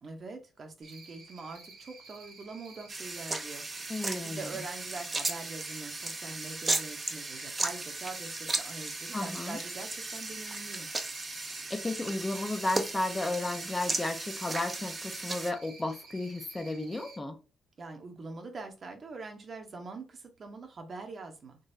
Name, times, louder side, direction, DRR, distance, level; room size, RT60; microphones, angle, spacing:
voice 1, 0.0-10.9 17.8-21.6, right 3 dB, 45° right, 1.0 m, -44 dB
Cricket, 0.8-17.2, right 4 dB, 80° right, 1.1 m, -52 dB
sound 1, 2.9-15.5, right 2 dB, 25° right, 0.6 m, -36 dB
voice 2, 3.9-4.5 9.1-9.6 11.7-17.4, left 2 dB, 20° left, 0.6 m, -33 dB
3.9 x 2.9 x 2.7 m
cardioid pair, 90°, 0 cm